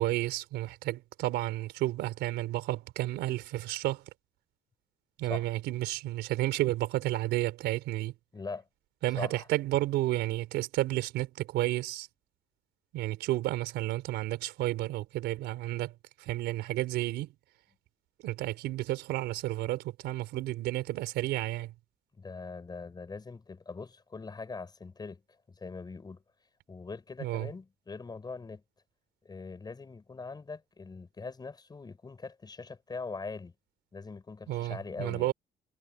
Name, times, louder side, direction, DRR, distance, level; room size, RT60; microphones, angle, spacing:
voice 1, 0.0-4.0 5.2-8.1 9.0-12.1 12.9-15.9 16.2-17.3 18.2-21.7 27.2-27.5 34.5-35.3, right 16 dB, 85° right, 4.1 m, -31 dB
voice 2, 8.3-8.7 9.2-9.5 22.1-25.2 25.5-26.2 26.7-28.6 29.2-33.5 33.9-35.3, left 4 dB, 25° left, 4.5 m, -42 dB
cardioid pair, 110°, 17 cm